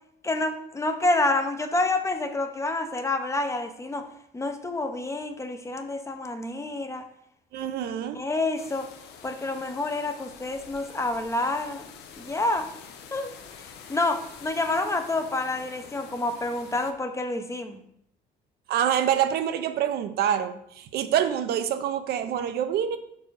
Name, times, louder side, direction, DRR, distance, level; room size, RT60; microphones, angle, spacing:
voice 1, 0.2-4.1 4.3-7.1 8.1-8.9 9.2-11.9 12.2-12.7 13.1-13.3 13.9-17.8, left 2 dB, 15° left, 7 dB, 0.6 m, -28 dB
voice 2, 7.5-8.2 18.7-23.0, right 9 dB, 70° right, 9 dB, 0.6 m, -26 dB
sound 1, 8.6-16.9, left 6 dB, 80° left, 0.8 m, -46 dB
5.4 x 4.8 x 4.6 m, 0.72 s
cardioid pair, 110°, 17 cm